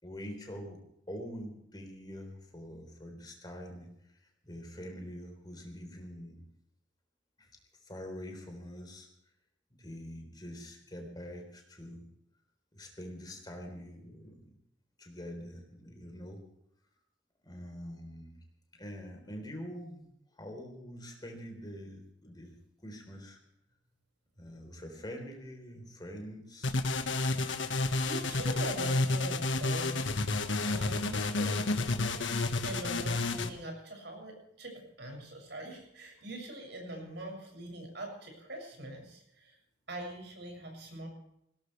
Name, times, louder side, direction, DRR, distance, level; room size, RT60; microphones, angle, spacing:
voice 1, 0.0-0.8 1.1-4.2 4.4-6.4 7.4-9.1 9.7-12.1 12.7-14.6 15.0-16.4 17.4-18.4 18.7-20.0 20.3-22.5 22.8-23.4 24.4-26.8, equal, 20° left, 3 dB, 3.8 m, -45 dB
sound 1, 26.6-33.5, left 2 dB, 80° left, 1.5 m, -30 dB
voice 2, 28.0-30.2 30.7-31.6 32.6-39.5 39.9-41.1, right 1 dB, 60° right, 1 dB, 7.0 m, -42 dB
20.5 x 18.0 x 3.4 m, 0.76 s
head